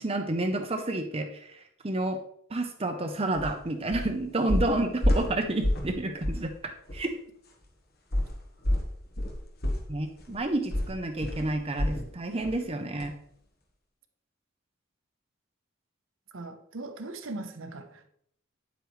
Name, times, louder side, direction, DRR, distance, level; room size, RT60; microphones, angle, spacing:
voice 1, 0.0-2.2 2.5-6.5 6.9-7.1 9.9-13.1, right 2 dB, 30° right, 0.7 m, -30 dB
sound 1, 3.3-3.5 3.9-4.1 4.5-5.9 6.2-6.5 6.9-7.0 8.1-12.1 12.4-12.6 13.0-13.1, left 1 dB, 50° left, 1.4 m, -29 dB
voice 2, 16.3-18.1, right 2 dB, 75° right, 1.0 m, -39 dB
9.1 x 8.0 x 3.2 m
head